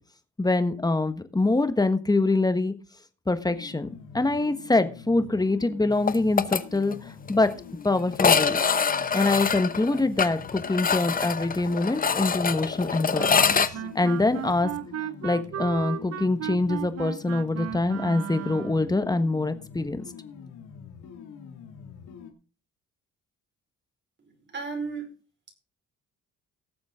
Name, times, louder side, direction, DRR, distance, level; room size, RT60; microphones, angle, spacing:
voice 1, 0.4-2.7 3.3-3.9 4.1-7.5 7.8-8.6 9.1-13.3 13.6-14.7 15.2-20.0, left 2 dB, 15° left, 10 dB, 1.4 m, -24 dB
sound 1, 3.4-22.3, left 7 dB, 85° left, 2.2 m, -45 dB
sound 2, 6.1-6.6 6.9-7.0 7.3-7.4 8.1-13.7, left 6 dB, 30° left, 0.8 m, -24 dB
Wind instrument woodwind instrument, 13.2-18.9, right 10 dB, 55° right, 0.6 m, -35 dB
voice 2, 24.2-25.1, right 4 dB, 40° right, 3 dB, 4.7 m, -34 dB
18.5 x 7.3 x 3.7 m, 0.35 s
cardioid pair, 90°, 30 cm